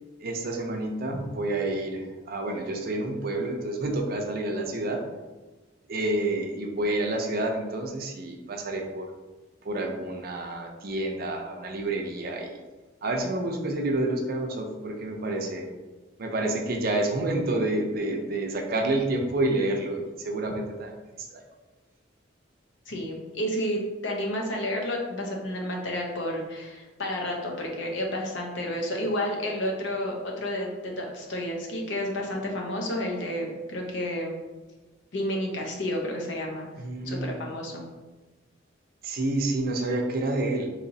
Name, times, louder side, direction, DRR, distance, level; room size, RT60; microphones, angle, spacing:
voice 1, 0.2-5.0 5.9-9.1 9.6-12.6 13.0-15.7 16.2-20.9 21.3-21.4 36.8-37.4 39.0-40.7, right 2 dB, 50° right, 3 dB, 0.5 m, -29 dB
voice 2, 22.9-34.3 35.1-36.7 37.0-37.8, left 1 dB, 70° left, 0 dB, 0.7 m, -31 dB
4.0 x 2.9 x 2.7 m, 1.2 s
head